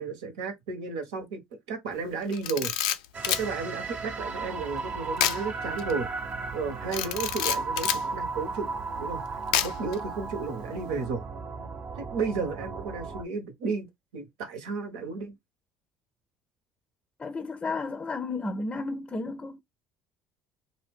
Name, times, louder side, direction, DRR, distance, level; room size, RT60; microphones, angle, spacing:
voice 1, 0.0-2.7 3.3-6.1 6.5-8.7 9.0-11.3 12.0-13.9 14.1-15.3, right 4 dB, 80° right, 1.0 m, -33 dB
Camera, 2.3-3.5 5.2-5.4 5.8-5.9 6.9-8.0 9.5-9.9, left 11 dB, 80° left, 0.4 m, -28 dB
sound 1, 3.1-13.2, right 4 dB, 45° right, 0.8 m, -35 dB
voice 2, 17.2-19.6, left 3 dB, 25° left, 0.5 m, -33 dB
2.6 x 2.2 x 3.4 m
hypercardioid pair, 65°, 4 cm